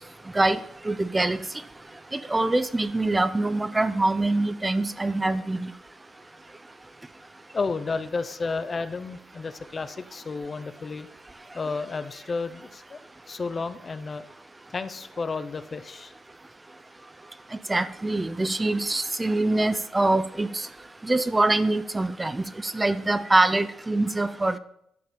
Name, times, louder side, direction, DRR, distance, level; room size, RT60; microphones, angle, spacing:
voice 1, 0.9-1.4 2.3-5.7 17.7-20.5 21.0-24.6, right 2 dB, 15° right, 13 dB, 0.4 m, -24 dB
voice 2, 7.5-11.1 11.5-13.0 13.3-14.3 14.7-16.1, left 4 dB, 35° left, 12 dB, 0.5 m, -32 dB
11.0 x 5.2 x 4.3 m, 0.75 s
cardioid pair, 90°, 0 cm